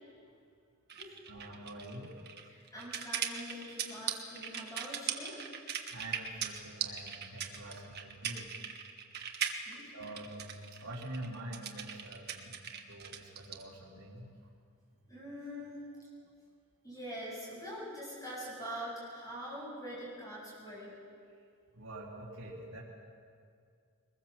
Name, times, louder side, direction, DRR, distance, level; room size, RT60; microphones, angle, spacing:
sound 1, 0.9-13.6, right 8 dB, 45° right, 1.6 m, -39 dB
voice 1, 1.3-2.1 5.9-8.5 9.9-14.3 21.7-22.8, right 1 dB, 70° right, -6 dB, 3.6 m, -46 dB
voice 2, 2.5-5.3 9.6-9.8 15.1-15.8 16.8-20.9, equal, 15° left, -6 dB, 8.0 m, -44 dB
23.0 x 21.0 x 7.4 m, 2.3 s
head